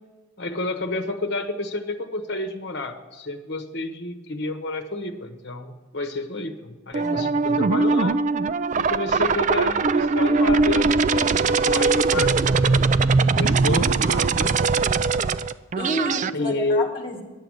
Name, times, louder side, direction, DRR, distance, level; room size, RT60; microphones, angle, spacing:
voice 1, 0.4-8.2 8.7-14.7 16.3-16.9, left 2 dB, 55° left, 6 dB, 1.2 m, -30 dB
sound 1, 6.9-16.3, right 4 dB, 35° right, 0.3 m, -21 dB
voice 2, 7.0-7.5 15.8-17.2, equal, 25° left, -1 dB, 2.0 m, -30 dB
11.0 x 7.9 x 7.7 m, 1.3 s
head